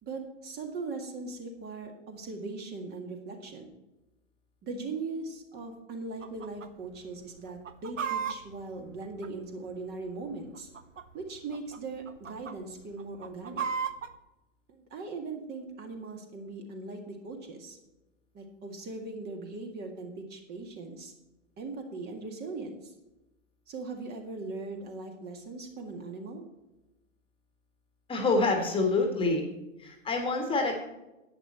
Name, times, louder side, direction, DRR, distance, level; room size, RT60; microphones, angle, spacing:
voice 1, 0.0-3.7 4.6-10.7 11.1-13.7 14.7-17.8 18.3-21.1 21.6-22.9 23.7-26.4, right 3 dB, 25° right, 4 dB, 1.8 m, -39 dB
Chicken rooster, 6.2-6.7 6.9-7.0 7.5-9.7 10.5-11.2 11.5-11.8 12.1-12.5 13.0-14.1, right 7 dB, 80° right, 0.9 m, -35 dB
voice 2, 28.1-29.4 29.8-30.8, left 3 dB, 15° left, 3 dB, 1.7 m, -27 dB
11.0 x 8.9 x 4.3 m, 0.99 s
figure-of-eight pair, 115°, 37 cm